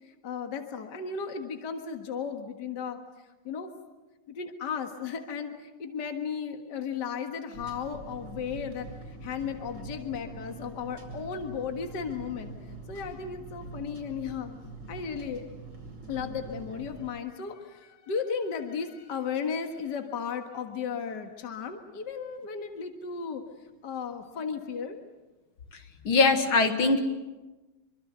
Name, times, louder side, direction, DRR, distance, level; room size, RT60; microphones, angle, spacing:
voice 1, 0.2-3.0 3.4-3.7 4.3-12.5 12.9-14.5 14.9-15.4 16.1-23.4 23.8-25.0, left 6 dB, 55° left, 5 dB, 2.2 m, -35 dB
sound 1, 7.5-17.1, right 3 dB, 60° right, 5.9 m, -44 dB
voice 2, 25.7-27.0, left 3 dB, 70° left, 6 dB, 2.7 m, -23 dB
25.5 x 24.5 x 8.0 m, 1.1 s
omnidirectional pair, 2.4 m